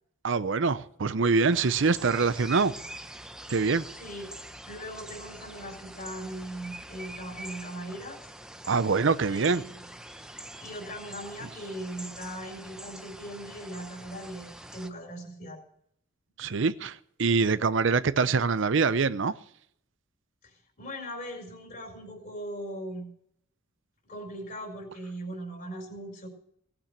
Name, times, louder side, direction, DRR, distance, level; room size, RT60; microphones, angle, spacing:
voice 1, 0.2-2.7 3.5-3.8 8.7-9.6 16.4-19.4, right 4 dB, 65° right, 0.6 m, -24 dB
sound 1, 1.5-14.9, right 1 dB, 5° right, 0.8 m, -45 dB
voice 2, 4.6-8.2 9.3-9.8 10.6-15.6 20.4-23.1 24.1-26.3, right 1 dB, 45° left, 4.5 m, -39 dB
18.0 x 8.8 x 6.8 m
head